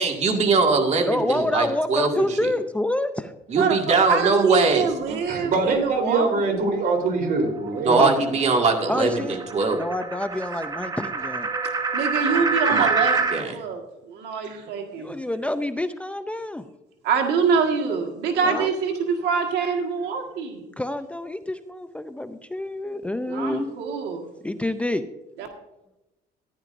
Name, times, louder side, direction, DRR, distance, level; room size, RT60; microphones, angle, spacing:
voice 1, 0.0-2.5 3.5-5.2 7.8-9.8 12.7-12.9 13.3-13.6, right 4 dB, 40° right, 2 dB, 2.0 m, -21 dB
voice 2, 1.0-3.3 7.9-8.1 8.9-9.4 9.7-11.5 15.0-16.6 18.4-18.7 20.8-23.7 24.4-25.0, left 1 dB, 5° left, 9 dB, 0.5 m, -27 dB
voice 3, 3.6-6.3 11.9-13.8 14.1-15.2 17.0-20.7 23.3-24.3 25.4-25.5, right 5 dB, 85° right, 3 dB, 1.7 m, -25 dB
voice 4, 5.3-8.2 12.1-12.4, right 3 dB, 55° right, 3 dB, 3.6 m, -24 dB
sound 1, 6.7-13.4, right 4 dB, 25° right, 1.2 m, -28 dB
15.0 x 10.5 x 2.6 m, 0.94 s
cardioid pair, 110°, 17 cm